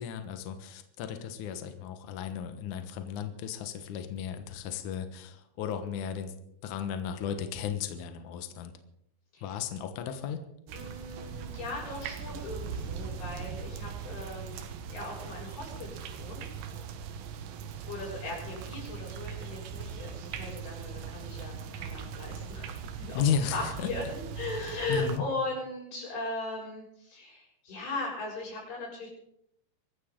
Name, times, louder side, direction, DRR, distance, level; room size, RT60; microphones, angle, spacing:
voice 1, 0.0-6.3 6.6-8.7 9.4-10.4 23.1-23.9 24.9-25.2, left 8 dB, 80° left, 7 dB, 1.7 m, -34 dB
voice 2, 10.7-14.6 14.9-16.5 17.9-23.2 23.5-29.1, left 2 dB, 55° left, -3 dB, 8.6 m, -38 dB
sound 1, 10.7-25.2, right 7 dB, 80° right, 3.7 m, -40 dB
24.5 x 14.0 x 3.8 m, 0.76 s
omnidirectional pair, 5.6 m